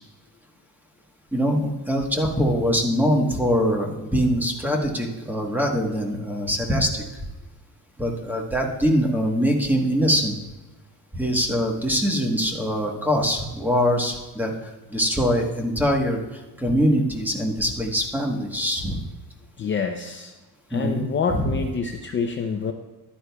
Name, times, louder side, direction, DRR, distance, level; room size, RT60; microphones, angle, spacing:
voice 1, 1.3-7.0 8.0-10.3 11.1-16.2 16.6-19.0 20.7-21.0 21.3-21.6, equal, 5° right, 1 dB, 1.2 m, -23 dB
voice 2, 19.6-20.3 20.7-22.7, left 5 dB, 30° left, 3 dB, 0.5 m, -27 dB
14.0 x 11.0 x 2.3 m, 1.2 s
cardioid pair, 165°, 38 cm